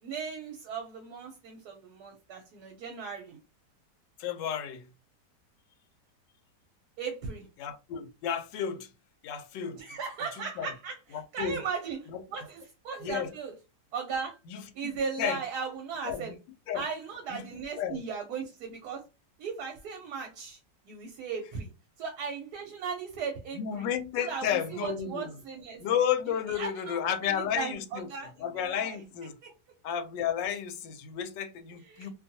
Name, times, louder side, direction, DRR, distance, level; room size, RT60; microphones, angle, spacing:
voice 1, 0.0-3.4 7.0-7.5 9.7-13.5 13.9-14.4 14.7-16.3 16.7-19.0 19.4-20.6 20.9-21.7 22.0-23.9 24.2-25.8 26.5-28.3 28.6-29.0 29.4-29.5 31.9-32.1, right 5 dB, 70° right, 1.1 m, -37 dB
voice 2, 4.2-4.8 7.6-8.9 9.2-9.8 10.6-10.7 11.1-11.6 12.1-12.2 13.0-13.3 14.5-14.9 15.2-15.4 16.0-16.3 16.7-16.8 17.3-17.5 17.8-18.0 23.5-25.3 25.8-28.1 28.4-29.3 29.8-32.1, left 9 dB, 90° left, 1.2 m, -32 dB
2.8 x 2.3 x 2.6 m
omnidirectional pair, 1.9 m